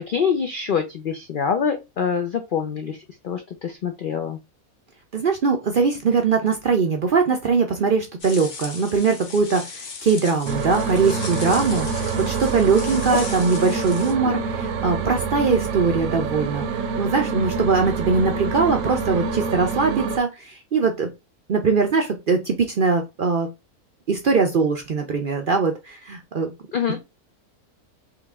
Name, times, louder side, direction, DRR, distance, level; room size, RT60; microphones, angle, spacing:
voice 1, 0.0-3.0 3.2-4.4 26.7-27.0, left 6 dB, 70° left, 0.4 m, -25 dB
voice 2, 5.1-11.9 12.3-21.1 21.5-23.5 24.1-26.5, right 4 dB, 55° right, 0.6 m, -21 dB
sound 1, 8.2-14.1, left 5 dB, 55° left, 1.2 m, -37 dB
sound 2, 10.5-20.2, right 5 dB, 75° right, 1.1 m, -26 dB
3.8 x 3.2 x 3.5 m
omnidirectional pair, 1.5 m